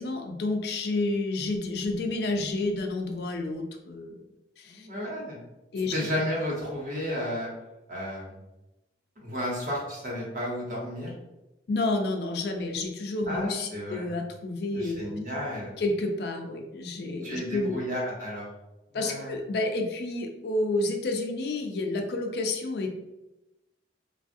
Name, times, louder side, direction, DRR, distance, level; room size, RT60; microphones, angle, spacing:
voice 1, 0.0-4.1 4.6-4.9 5.7-5.9 11.7-15.1 15.8-17.8 18.9-23.0, left 2 dB, 60° left, 3 dB, 0.4 m, -30 dB
voice 2, 4.6-5.4 5.9-7.5 7.9-8.4 9.2-11.1 13.3-14.1 14.7-15.7 17.2-18.5 18.9-19.3, equal, 45° right, -4 dB, 1.0 m, -32 dB
3.3 x 2.3 x 2.5 m, 0.98 s
head